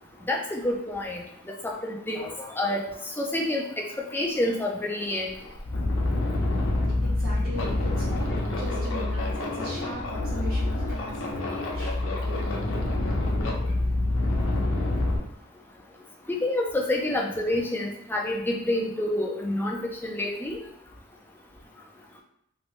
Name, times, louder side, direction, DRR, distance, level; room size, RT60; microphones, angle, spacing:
voice 1, 0.3-1.2 1.6-2.8 3.2-3.9 4.1-5.3 16.3-20.6, left 1 dB, 10° left, -1 dB, 0.4 m, -28 dB
sound 1, 5.3-15.2, left 2 dB, 60° left, 0.6 m, -27 dB
voice 2, 7.0-11.9 12.3-12.5, equal, 40° right, -9 dB, 1.0 m, -39 dB
3.1 x 2.6 x 3.0 m, 0.77 s
head